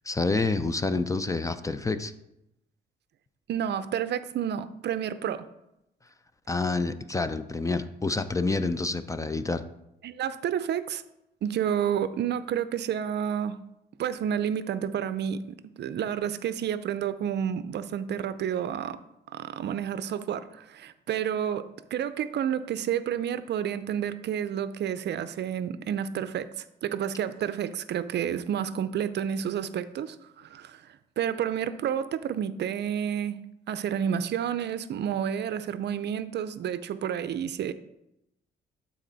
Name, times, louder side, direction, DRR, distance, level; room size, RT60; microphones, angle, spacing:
voice 1, 0.1-2.1 6.5-9.6, left 3 dB, 15° left, 11 dB, 0.5 m, -28 dB
voice 2, 3.5-5.5 10.0-11.0 11.4-13.6 14.0-19.0 19.3-33.4 33.7-37.7, right 9 dB, 60° right, 13 dB, 0.5 m, -30 dB
12.0 x 4.2 x 4.0 m, 0.86 s
cardioid pair, 90°, 20 cm